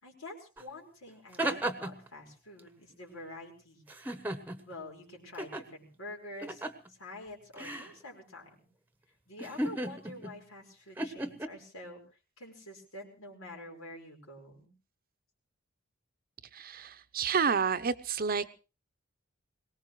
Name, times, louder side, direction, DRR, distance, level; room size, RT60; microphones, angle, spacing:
voice 1, 0.0-3.8 4.6-6.6 6.9-8.5 9.3-12.0 12.4-14.7, left 1 dB, 90° left, 0 dB, 5.1 m, -47 dB
sound 1, 0.6-0.7 1.1-2.1 3.9-4.7 5.4-5.6 6.4-6.9 7.6-7.9 9.4-10.4 11.0-11.5, right 1 dB, 10° right, 1.1 m, -35 dB
voice 2, 16.5-18.5, right 6 dB, 45° right, 12 dB, 0.8 m, -30 dB
22.5 x 19.0 x 3.2 m, 0.33 s
head